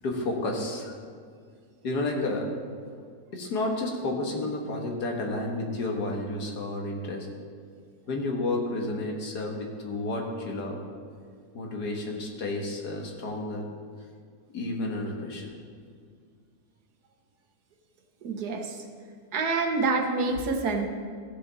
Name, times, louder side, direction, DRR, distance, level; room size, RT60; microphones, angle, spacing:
voice 1, 0.0-0.9 1.8-2.5 3.3-7.3 8.1-10.8 11.5-13.7 14.5-15.5, left 2 dB, 75° left, 1 dB, 1.9 m, -31 dB
voice 2, 18.2-18.8 19.3-20.9, right 3 dB, 75° right, 4 dB, 1.5 m, -27 dB
15.0 x 6.8 x 4.1 m, 2.1 s
omnidirectional pair, 1.7 m